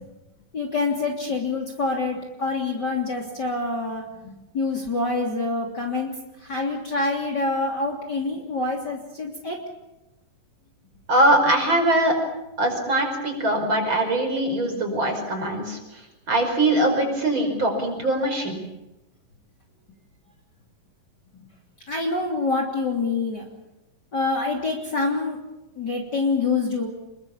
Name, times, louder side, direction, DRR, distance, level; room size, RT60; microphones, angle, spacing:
voice 1, 0.5-6.1 6.4-9.6 21.3-21.5 21.9-23.5 24.1-25.4 25.8-26.9, left 3 dB, 30° left, 0 dB, 3.4 m, -26 dB
voice 2, 11.1-12.1 12.6-16.0 16.3-18.6, right 1 dB, 35° right, 3 dB, 5.9 m, -22 dB
27.5 x 22.5 x 7.1 m, 0.96 s
omnidirectional pair, 3.9 m